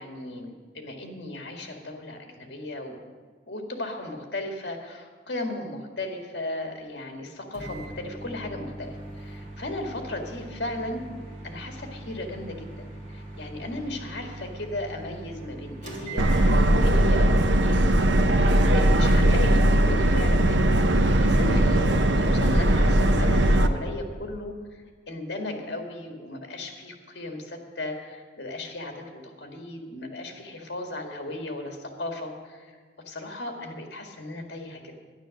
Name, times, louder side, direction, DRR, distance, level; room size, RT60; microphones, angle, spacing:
voice 1, 0.0-3.0 3.5-11.0 11.4-32.8 33.1-35.0, left 1 dB, 65° left, 3 dB, 1.9 m, -36 dB
Microwave oven, 7.5-16.9, right 1 dB, 45° right, 3.1 m, -41 dB
Subway metro underground, 16.2-23.7, right 1 dB, 85° right, 0.8 m, -19 dB
11.5 x 10.5 x 6.5 m, 1.5 s
head